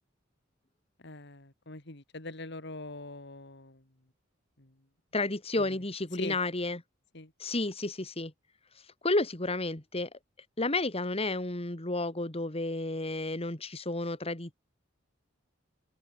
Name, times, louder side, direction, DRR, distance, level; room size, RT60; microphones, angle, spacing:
voice 1, 1.0-3.8 4.6-4.7 5.6-5.8 6.2-6.4 7.1-7.3, left 2 dB, 65° left, 3.0 m, -43 dB
voice 2, 5.1-6.8 7.4-8.3 9.0-10.1 10.6-14.5, left 2 dB, 30° left, 2.7 m, -31 dB
open air
head